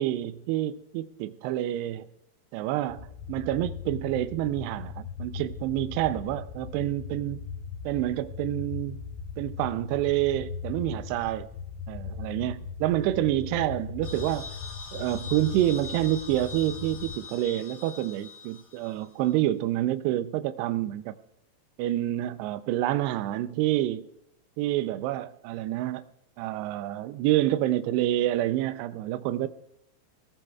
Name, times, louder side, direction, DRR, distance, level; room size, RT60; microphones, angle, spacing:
voice 1, 0.0-2.1 2.5-7.5 7.9-9.0 9.4-11.5 11.9-14.5 14.9-21.2 21.8-24.1 24.6-26.0 26.4-29.5, right 14 dB, 80° right, 2.5 m, -28 dB
sound 1, 2.9-17.2, left 5 dB, 85° left, 3.2 m, -39 dB
sound 2, 14.0-19.3, left 4 dB, 55° left, 3.9 m, -43 dB
25.0 x 16.0 x 2.4 m
omnidirectional pair, 5.3 m